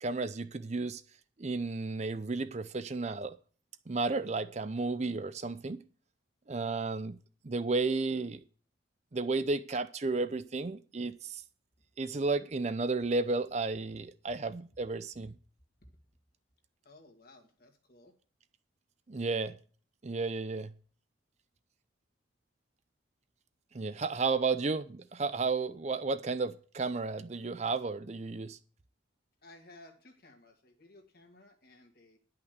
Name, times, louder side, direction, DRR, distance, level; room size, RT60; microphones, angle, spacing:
voice 1, 0.0-1.0 1.4-3.3 3.9-5.8 6.5-7.2 7.4-8.4 9.1-11.4 12.0-15.3 19.1-19.6 20.0-20.7 23.7-28.6, right 3 dB, 35° right, 0.5 m, -33 dB
voice 2, 16.8-18.1 24.2-24.4 29.4-32.2, left 2 dB, 50° left, 2.0 m, -57 dB
11.0 x 5.8 x 8.0 m
head